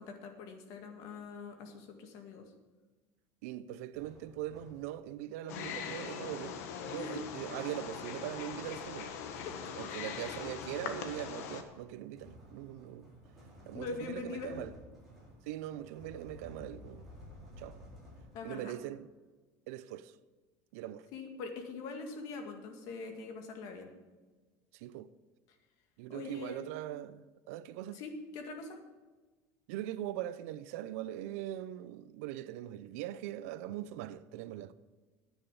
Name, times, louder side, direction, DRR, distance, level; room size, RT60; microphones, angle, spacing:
voice 1, 0.0-2.4 7.0-7.2 9.4-9.6 13.7-14.5 18.3-18.8 21.1-23.9 26.1-26.7 27.9-28.8, left 4 dB, 50° left, 1.9 m, -43 dB
voice 2, 3.4-6.6 6.8-9.1 9.8-13.1 13.7-14.7 15.5-17.1 17.6-17.8 18.4-19.1 19.7-20.1 20.7-21.1 24.7-25.1 26.0-28.0 29.7-34.7, right 13 dB, 75° right, 0.6 m, -41 dB
sound 1, 3.9-5.2 6.5-18.7, left 1 dB, ahead, 4.8 m, -55 dB
Wild animals, 5.5-11.6, left 7 dB, 90° left, 1.4 m, -41 dB
10.0 x 9.1 x 7.1 m
cardioid pair, 170°, 8 cm